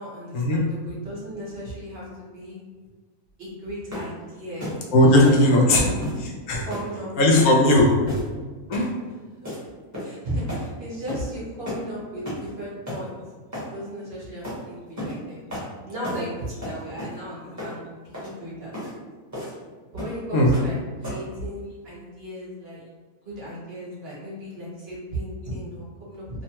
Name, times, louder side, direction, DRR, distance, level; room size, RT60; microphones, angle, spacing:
voice 1, 0.0-2.0 2.3-2.6 3.4-4.7 5.2-5.4 5.6-6.1 6.7-7.4 10.0-13.1 13.7-15.5 15.8-18.9 19.9-20.8 21.0-22.8 23.2-26.4, equal, 50° right, -7 dB, 1.2 m, -35 dB
sound 1, 3.9-4.2 4.6-4.8 5.2-5.5 6.0-6.2 6.7-6.9 7.4-7.5 8.1-8.4 8.7-8.9 9.4-9.6 9.9-10.2 10.5-10.7 11.1-11.3 11.7-11.9 12.3-12.5 12.9-13.0 13.5-13.7 14.4-14.6 15.0-15.2 15.5-15.7 16.0-16.3 16.6-17.2 17.6-17.8 18.1-18.3 18.7-18.9 19.3-19.6 20.0-20.2 20.5-20.7 21.0-21.3, left 1 dB, 15° right, 0.8 m, -33 dB
voice 2, 4.9-5.9 6.2-6.7 6.9-8.2 8.7-8.9 10.3-10.5 20.3-20.5, left 1 dB, 85° left, -1 dB, 1.1 m, -18 dB
3.0 x 2.1 x 2.8 m, 1.4 s
omnidirectional pair, 1.5 m